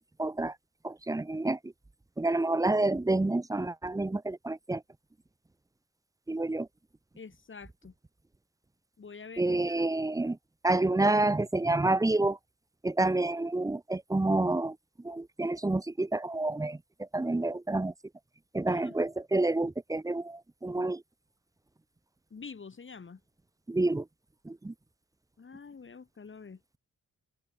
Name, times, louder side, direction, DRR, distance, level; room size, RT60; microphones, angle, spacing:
voice 1, 0.2-0.5 0.8-1.6 2.2-4.8 6.3-6.7 9.4-10.4 10.6-12.4 12.8-14.8 15.0-16.8 17.1-17.9 18.5-21.0 23.7-24.0 24.5-24.7, right 2 dB, 10° right, 0.5 m, -28 dB
voice 2, 7.1-7.9 9.0-9.9 18.7-19.0 22.3-23.2 25.4-26.6, left 5 dB, 40° left, 3.2 m, -47 dB
wide cardioid pair, 160°, 31 cm